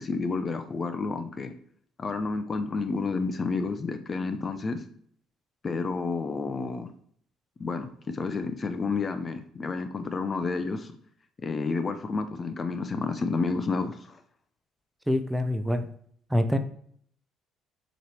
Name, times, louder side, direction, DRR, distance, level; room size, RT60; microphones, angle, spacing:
voice 1, 0.0-1.5 2.0-4.8 5.6-6.9 7.6-10.9 11.4-14.2, left 4 dB, 35° left, 9 dB, 0.6 m, -30 dB
voice 2, 15.1-15.9 16.3-16.6, left 1 dB, 5° right, 8 dB, 0.6 m, -25 dB
6.6 x 3.2 x 4.4 m, 0.62 s
supercardioid pair, 80°, 0 cm